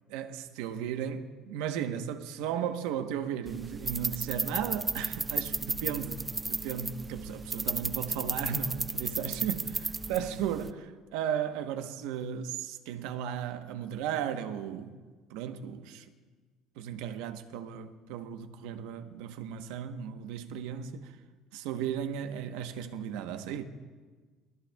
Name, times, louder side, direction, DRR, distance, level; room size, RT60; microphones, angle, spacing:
voice 1, 0.1-9.6 10.1-15.0 15.3-16.0 16.8-21.1 21.5-23.6, right 9 dB, 85° right, 0.9 m, -35 dB
sound 1, 3.5-10.7, right 3 dB, 20° right, 0.6 m, -34 dB
24.5 x 19.5 x 2.3 m
supercardioid pair, 105°, 0 cm